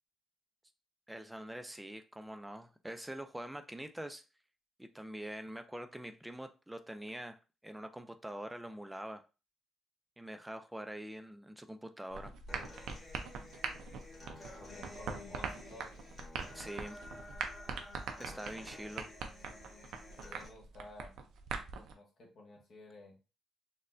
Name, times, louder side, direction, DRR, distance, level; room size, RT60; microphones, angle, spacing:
voice 1, 1.1-4.2 4.8-7.4 7.6-9.2 10.2-12.3 16.5-17.0 18.2-19.1, right 1 dB, 10° right, 8 dB, 0.3 m, -44 dB
sound 1, 12.1-21.9, right 5 dB, 80° right, 0.5 m, -43 dB
Human voice / Acoustic guitar, 12.5-20.5, left 2 dB, 30° left, 1.5 m, -52 dB
voice 2, 14.5-15.9 20.2-21.1 21.7-23.2, left 2 dB, 60° left, -1 dB, 1.0 m, -53 dB
4.1 x 2.1 x 2.5 m, 0.31 s
cardioid pair, 90°, 0 cm